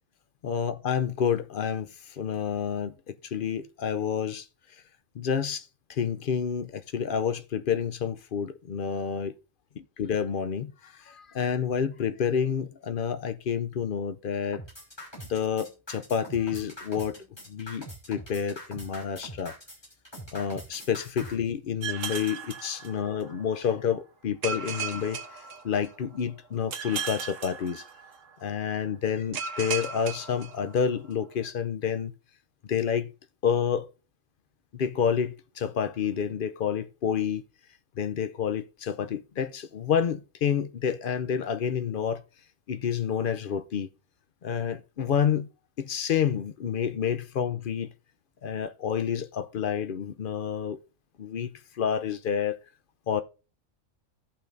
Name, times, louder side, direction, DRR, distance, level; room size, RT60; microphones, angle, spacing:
voice 1, 0.4-4.5 5.1-9.3 9.8-14.6 15.3-17.2 17.5-19.5 20.3-27.8 28.4-32.1 32.6-33.1 33.4-33.9 34.7-37.4 38.0-42.2 42.7-43.9 44.4-45.5 45.8-47.9 48.4-50.8 51.2-52.6 53.1-53.2, left 7 dB, 55° left, 0.7 m, -29 dB
sound 1, 14.5-21.3, equal, 20° left, 3.1 m, -42 dB
sound 2, 21.8-23.4 24.4-26.2 26.7-28.4 29.3-31.1, right 6 dB, 75° right, 1.4 m, -36 dB
16.5 x 5.8 x 2.6 m
omnidirectional pair, 1.3 m